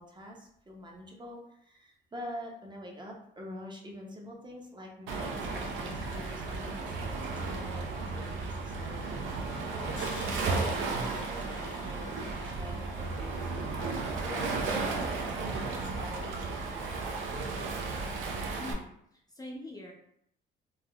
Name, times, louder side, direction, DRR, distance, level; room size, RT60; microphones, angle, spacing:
voice 1, 0.0-13.7 14.2-17.5, equal, 20° right, 0 dB, 0.6 m, -46 dB
Waves surf, 5.1-18.7, right 3 dB, 80° right, 0.5 m, -34 dB
Crash cymbal, 10.0-15.0, left 3 dB, 75° left, 0.6 m, -52 dB
voice 2, 18.6-19.9, left 1 dB, 20° left, -2 dB, 0.5 m, -44 dB
3.4 x 2.1 x 2.2 m, 0.70 s
cardioid pair, 90°, 20 cm